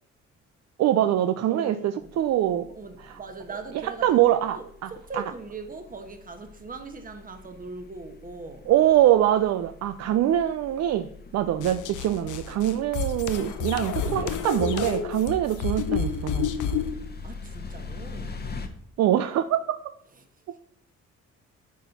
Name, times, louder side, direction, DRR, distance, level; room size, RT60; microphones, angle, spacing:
voice 1, 0.8-2.7 3.0-3.2 4.0-5.2 8.7-16.5 19.0-19.9, right 12 dB, 60° right, 10 dB, 0.4 m, -24 dB
voice 2, 1.5-2.1 2.7-4.2 4.5-4.6 4.9-8.6 17.2-18.4, right 4 dB, 30° right, 7 dB, 1.1 m, -40 dB
sound 1, 2.0-18.7, left 4 dB, 35° left, 0.9 m, -43 dB
sound 2, 11.6-16.9, left 6 dB, 80° left, 0.8 m, -30 dB
9.2 x 4.3 x 4.1 m, 0.70 s
cardioid pair, 90°, 30 cm